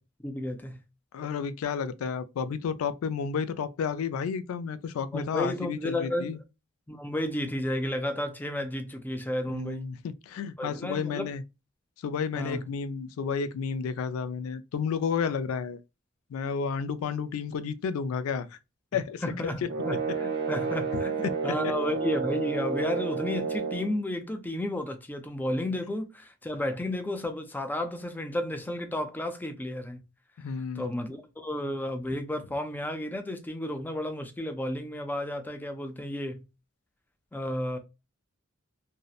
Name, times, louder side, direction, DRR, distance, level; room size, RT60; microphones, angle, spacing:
voice 1, 0.2-0.8 5.1-6.4 6.9-9.9 10.6-11.3 12.3-12.7 18.9-21.1 21.4-30.0 30.8-36.5 37.3-37.8, left 1 dB, 10° left, 0.3 m, -32 dB
voice 2, 1.1-6.4 9.5-11.4 12.0-15.8 16.3-18.5 18.9-19.5 21.2-21.3 21.6-21.7 30.4-30.9, left 6 dB, 85° left, 0.3 m, -31 dB
sound 1, 19.7-23.9, right 5 dB, 55° right, 0.5 m, -30 dB
2.7 x 2.0 x 2.3 m
head